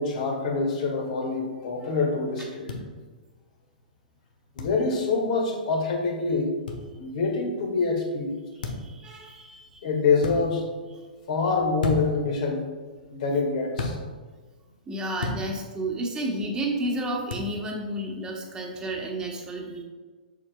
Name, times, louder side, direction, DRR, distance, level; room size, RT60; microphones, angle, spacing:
voice 1, 0.0-2.7 4.6-6.5 7.0-8.4 9.8-10.7 11.3-12.7 13.1-13.9, left 4 dB, 55° left, 0 dB, 1.9 m, -25 dB
sound 1, 2.7-2.8 4.6-4.8 6.7-6.8 8.6-8.9 10.2-10.4 11.8-12.2 13.8-14.0 15.2-15.4 17.3-17.5, left 3 dB, 75° left, 1.1 m, -31 dB
voice 2, 8.6-9.8 13.9-14.0 14.9-19.8, right 1 dB, 15° right, 0 dB, 1.2 m, -31 dB
7.2 x 6.4 x 2.3 m, 1.4 s
hypercardioid pair, 120°, 5 cm